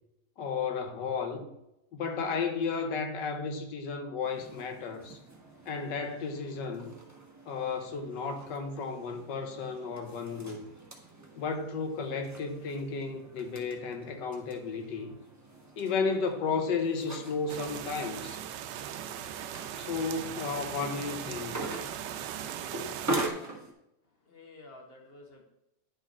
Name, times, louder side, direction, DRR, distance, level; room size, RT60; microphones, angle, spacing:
voice 1, 0.4-1.5 1.9-5.2 5.7-6.9 7.5-10.7 11.4-15.1 15.8-18.4 19.8-21.6, left 5 dB, 80° left, 1.6 m, -33 dB
sound 1, 4.2-23.7, right 1 dB, 10° right, 1.0 m, -43 dB
sound 2, 17.5-23.3, right 10 dB, 85° right, 1.2 m, -39 dB
voice 2, 24.0-25.4, left 2 dB, 35° left, 1.6 m, -52 dB
10.5 x 4.8 x 4.3 m
omnidirectional pair, 1.9 m